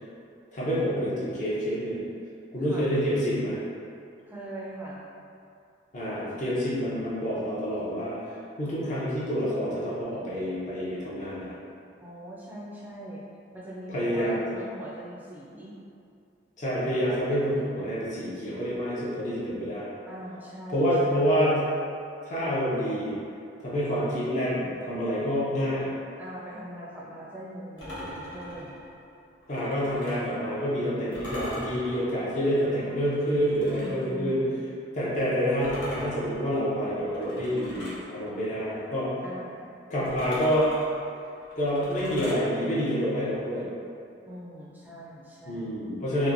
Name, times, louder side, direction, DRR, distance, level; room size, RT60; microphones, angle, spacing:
voice 1, 0.5-2.0 2.5-3.6 5.9-8.3 8.6-11.6 13.9-14.5 16.6-19.9 20.7-21.6 22.3-23.2 23.6-25.9 29.5-34.4 34.9-39.1 39.9-40.7 41.6-43.7 45.5-46.3, equal, 40° left, -9 dB, 0.6 m, -27 dB
voice 2, 4.3-5.0 12.0-13.2 13.5-15.8 20.1-21.5 26.2-28.8 33.8-34.7 39.2-39.8 44.3-45.8, right 1 dB, 10° right, -6 dB, 0.4 m, -41 dB
sound 1, 27.8-30.4 31.1-34.1 35.6-38.1 40.0-42.5, equal, 80° left, 0.8 m, -41 dB
3.0 x 2.2 x 2.5 m, 2.5 s
head